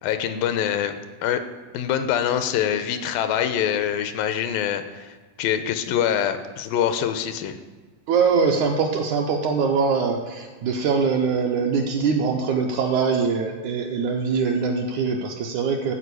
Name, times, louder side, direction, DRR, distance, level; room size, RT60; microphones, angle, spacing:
voice 1, 0.0-1.0 1.2-1.4 1.7-7.6, left 9 dB, 90° left, 9 dB, 2.4 m, -24 dB
voice 2, 8.1-15.9, right 5 dB, 75° right, 1 dB, 1.9 m, -23 dB
13.0 x 4.7 x 8.2 m, 1.3 s
omnidirectional pair, 4.0 m